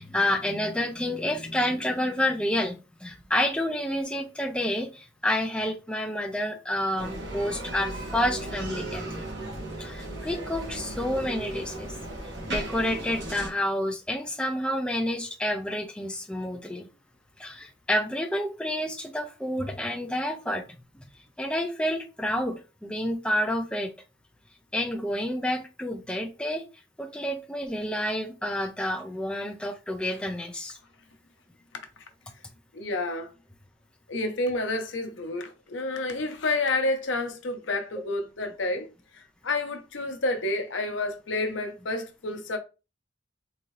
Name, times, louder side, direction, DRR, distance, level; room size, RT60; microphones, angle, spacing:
voice 1, 0.0-9.3 9.8-11.9 12.5-16.9 17.4-20.7 21.4-23.9 24.7-26.6 27.0-30.8, left 1 dB, 5° left, 0.4 m, -29 dB
Bicycle, 7.0-13.5, right 1 dB, 65° right, 1.5 m, -36 dB
voice 2, 32.7-33.3 34.1-38.9 39.1-42.6, left 2 dB, 85° left, 0.8 m, -29 dB
3.8 x 2.7 x 3.1 m
head